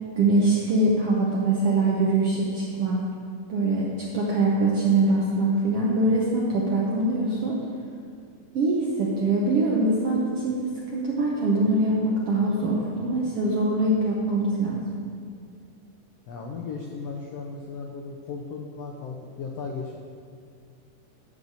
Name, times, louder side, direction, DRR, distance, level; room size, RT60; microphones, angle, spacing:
voice 1, 0.2-3.0 3.5-3.9 4.1-7.6 8.5-14.8, right 2 dB, 70° right, -4 dB, 1.4 m, -23 dB
voice 2, 16.3-20.0, left 4 dB, 85° left, 1 dB, 1.4 m, -36 dB
11.0 x 4.0 x 7.2 m, 2.2 s
omnidirectional pair, 3.8 m